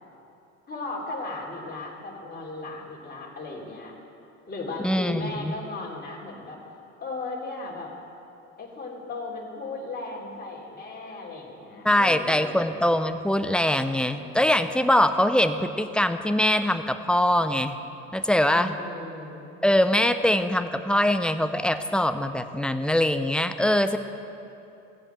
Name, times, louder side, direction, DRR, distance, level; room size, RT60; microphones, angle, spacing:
voice 1, 0.7-3.9 4.5-6.6 7.0-7.9 8.6-12.6 18.5-19.6, left 3 dB, 25° left, -2 dB, 3.2 m, -36 dB
voice 2, 4.8-5.5 11.8-17.8 18.1-18.8 19.6-24.0, left 1 dB, ahead, 10 dB, 0.6 m, -23 dB
16.0 x 7.9 x 7.5 m, 2.8 s
hypercardioid pair, 75°, 39 cm